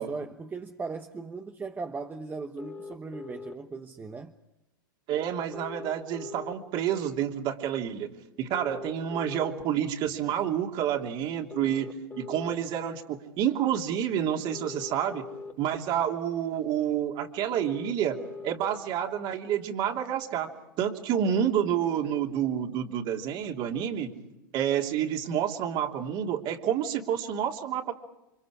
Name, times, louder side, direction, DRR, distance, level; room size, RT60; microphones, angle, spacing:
voice 1, 0.0-4.3, right 4 dB, 15° right, 6 dB, 1.2 m, -38 dB
sound 1, 2.6-3.5 5.5-6.5 8.5-9.5 11.5-12.5 14.5-15.5 17.5-18.5, left 4 dB, 15° left, 1.8 m, -41 dB
voice 2, 5.1-8.1 8.4-15.3 15.6-24.1 24.5-27.9, right 9 dB, 45° right, 3 dB, 3.0 m, -29 dB
29.0 x 25.5 x 4.9 m, 0.93 s
hypercardioid pair, 105°, 12 cm